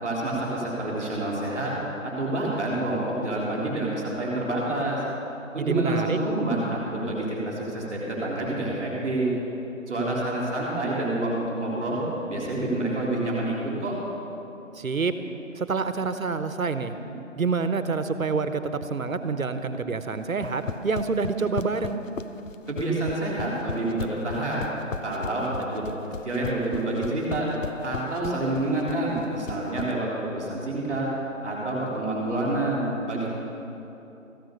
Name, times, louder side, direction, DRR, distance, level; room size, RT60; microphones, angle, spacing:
voice 1, 0.0-1.7 2.0-5.0 5.5-9.3 9.9-12.0 12.3-13.9 22.7-24.7 25.0-25.8 26.2-27.5 27.8-31.1 31.4-33.3, right 2 dB, 5° right, -22 dB, 2.2 m, -28 dB
voice 2, 5.6-6.2 14.7-15.1 15.5-16.9 17.4-22.0, right 4 dB, 80° right, 10 dB, 1.1 m, -27 dB
sound 1, 20.3-29.9, left 5 dB, 70° left, 0.7 m, -35 dB
14.5 x 11.0 x 6.6 m, 3.0 s
figure-of-eight pair, 175°, 40 cm